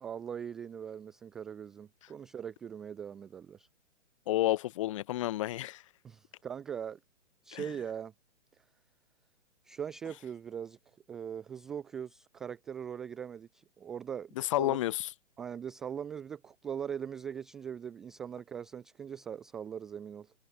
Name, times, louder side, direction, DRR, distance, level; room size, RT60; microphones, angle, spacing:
voice 1, 0.0-3.7 6.0-7.0 7.4-8.1 9.6-10.8 11.1-14.8 15.4-20.3, right 8 dB, ahead, 0.4 m, -41 dB
voice 2, 4.3-5.8 7.5-7.6 14.4-15.1, left 15 dB, 25° left, 0.9 m, -30 dB
hypercardioid pair, 155°, 37 cm